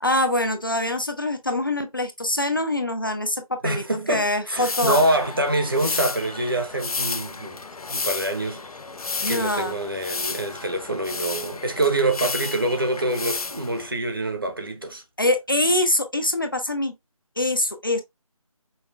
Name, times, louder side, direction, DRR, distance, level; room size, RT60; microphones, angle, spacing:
voice 1, 0.0-5.0 9.2-9.8 15.2-16.9 17.4-18.0, left 1 dB, 35° left, 0.6 m, -24 dB
voice 2, 3.6-7.6 7.9-8.6 9.3-15.0, right 2 dB, 40° right, 0.9 m, -25 dB
sound 1, 4.6-13.9, left 4 dB, 85° left, 0.5 m, -32 dB
5.5 x 2.2 x 3.2 m
figure-of-eight pair, 165°, 18 cm